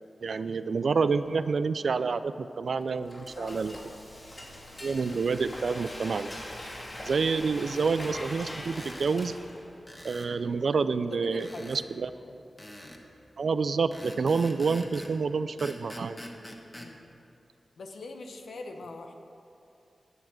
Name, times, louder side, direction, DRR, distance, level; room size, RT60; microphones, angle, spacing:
voice 1, 0.2-3.8 4.8-6.3 7.0-9.4 10.0-12.1 13.4-16.2, right 4 dB, 75° right, 12 dB, 0.3 m, -28 dB
Frying (food), 2.8-9.8, left 1 dB, 40° left, 2.9 m, -42 dB
voice 2, 3.3-3.7 11.1-12.0 12.3-12.4 16.8-17.0 17.8-19.1, left 2 dB, 85° left, 4 dB, 0.8 m, -43 dB
sound 1, 8.7-9.1 9.9-10.3 11.4-11.9 12.6-13.0 13.9-15.2 15.6-16.9, left 1 dB, 20° left, 1.4 m, -44 dB
11.0 x 7.2 x 6.2 m, 2.8 s
cardioid pair, 40°, 0 cm